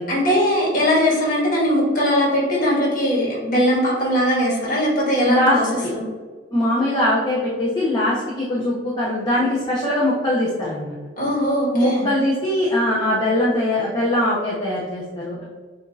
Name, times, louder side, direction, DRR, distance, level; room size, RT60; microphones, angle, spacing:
voice 1, 0.1-5.6 5.9-6.0 11.2-12.1, equal, 45° left, -4 dB, 1.5 m, -20 dB
voice 2, 5.3-5.9 6.5-11.0 11.7-15.4, left 1 dB, 20° left, -7 dB, 0.7 m, -21 dB
7.0 x 2.7 x 2.4 m, 1.5 s
head